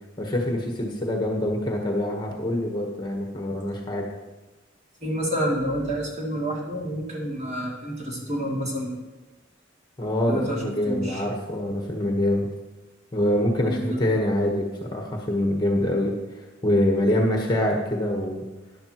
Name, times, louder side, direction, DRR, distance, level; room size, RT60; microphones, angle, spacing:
voice 1, 0.2-4.1 10.0-12.5 13.1-18.4, left 1 dB, 20° left, 1 dB, 1.1 m, -25 dB
voice 2, 5.0-9.0 10.3-11.2 13.7-14.0, equal, 35° right, -3 dB, 2.6 m, -29 dB
13.0 x 11.0 x 3.0 m, 1.2 s
head